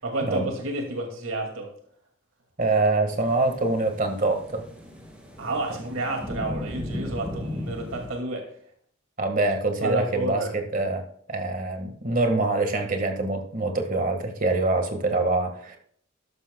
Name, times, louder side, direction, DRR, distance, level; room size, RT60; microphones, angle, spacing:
voice 1, 0.0-1.7 5.4-8.5 9.8-10.6, right 2 dB, 80° right, 2 dB, 2.3 m, -30 dB
voice 2, 2.6-4.6 9.2-15.8, right 2 dB, 40° right, 5 dB, 1.7 m, -25 dB
sound 1, 3.1-8.1, left 1 dB, 5° right, 2.6 m, -36 dB
13.0 x 12.0 x 2.3 m, 0.62 s
head